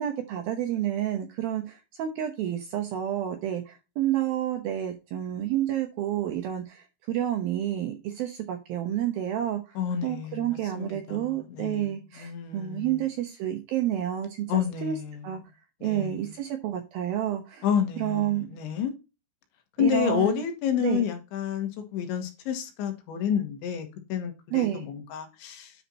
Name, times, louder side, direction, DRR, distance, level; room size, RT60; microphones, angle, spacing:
voice 1, 0.0-15.0 15.2-15.4 15.8-17.7 18.0-18.5 19.8-20.4 20.8-21.1 24.5-24.9, right 11 dB, 80° right, 2.1 m, -29 dB
voice 2, 9.8-13.0 14.5-15.3 15.8-16.2 17.6-18.9 19.8-25.7, left 8 dB, 75° left, 3.7 m, -30 dB
9.9 x 4.5 x 4.2 m
omnidirectional pair, 5.7 m